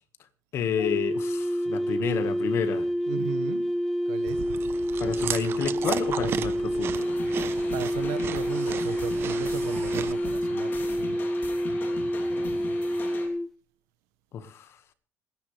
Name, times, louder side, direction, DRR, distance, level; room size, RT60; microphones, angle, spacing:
voice 1, 0.5-2.9 5.0-7.1 14.3-14.8, left 8 dB, 55° left, 11 dB, 1.7 m, -30 dB
sound 1, 0.8-13.5, equal, ahead, 0.8 m, -28 dB
voice 2, 3.1-3.7 4.1-4.4 7.7-11.2 12.9-13.0, right 12 dB, 90° right, 12 dB, 1.4 m, -36 dB
Chewing mastication, 4.3-10.1, right 9 dB, 50° right, 0.9 m, -35 dB
sound 2, 6.9-13.3, left 4 dB, 40° left, 3.2 m, -40 dB
25.5 x 10.5 x 3.4 m, 0.41 s
cardioid pair, 105°, 5 cm